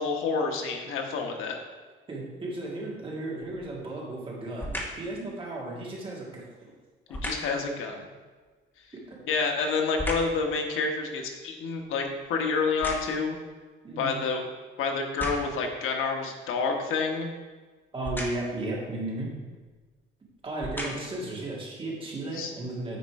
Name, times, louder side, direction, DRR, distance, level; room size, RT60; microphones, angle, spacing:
voice 1, 0.0-1.6 7.2-8.0 9.3-13.4 14.0-14.4 14.8-17.3 22.3-22.5, left 4 dB, 80° left, 3 dB, 1.2 m, -28 dB
voice 2, 2.1-6.7 9.1-9.2 13.8-14.2 17.9-19.3 20.4-23.0, right 2 dB, 25° right, -4 dB, 1.9 m, -35 dB
sound 1, 3.4-3.8 4.6-5.1 7.1-7.6 9.0-10.4 10.9-13.4 14.1-14.2 14.9-15.7 18.0-18.6 19.6-19.8 20.4-21.3 21.9-22.0, equal, 10° left, 1.1 m, -36 dB
9.5 x 4.2 x 4.7 m, 1.4 s
cardioid pair, 155°, 21 cm